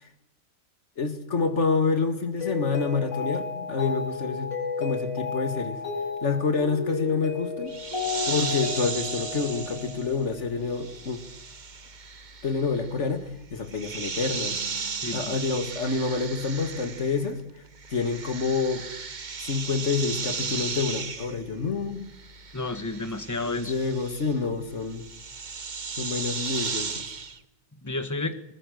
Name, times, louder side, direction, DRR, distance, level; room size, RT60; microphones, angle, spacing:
voice 1, 1.0-4.5 4.8-5.8 6.2-7.8 8.3-11.2 12.4-14.8 15.1-17.4 17.9-18.9 19.4-22.1 23.4-25.0 26.0-27.1, left 4 dB, 40° left, 8 dB, 2.3 m, -28 dB
Mallet percussion, 2.4-10.6, left 4 dB, 80° left, 5.5 m, -33 dB
sound 1, 7.7-17.4 17.7-27.4, right 5 dB, 35° right, 0.8 m, -36 dB
voice 2, 14.9-15.4 22.5-23.7 27.8-28.4, left 2 dB, 10° left, 10 dB, 1.3 m, -31 dB
21.5 x 20.5 x 6.6 m, 0.90 s
omnidirectional pair, 2.0 m